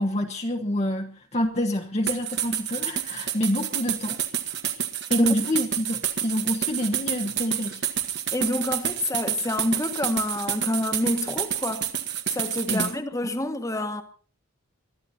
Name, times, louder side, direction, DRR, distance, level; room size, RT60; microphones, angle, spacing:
voice 1, 0.0-4.2 5.1-7.8 12.7-12.9, left 1 dB, 30° left, 1.2 m, -27 dB
sound 1, 2.1-12.9, right 10 dB, 55° right, 1.9 m, -29 dB
voice 2, 8.3-11.9 12.3-14.0, left 1 dB, 15° left, 1.5 m, -28 dB
22.5 x 13.5 x 4.2 m
head